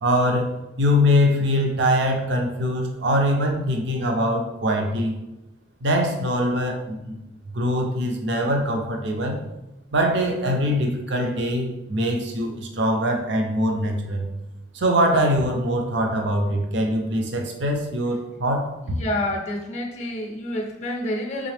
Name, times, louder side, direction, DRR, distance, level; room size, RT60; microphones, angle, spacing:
voice 1, 0.0-5.2 5.8-7.2 7.5-9.4 9.9-14.3 14.7-18.7, equal, 65° right, 2 dB, 0.6 m, -23 dB
voice 2, 18.8-21.5, left 1 dB, 35° left, 2 dB, 0.5 m, -28 dB
3.7 x 3.2 x 3.3 m, 0.96 s
head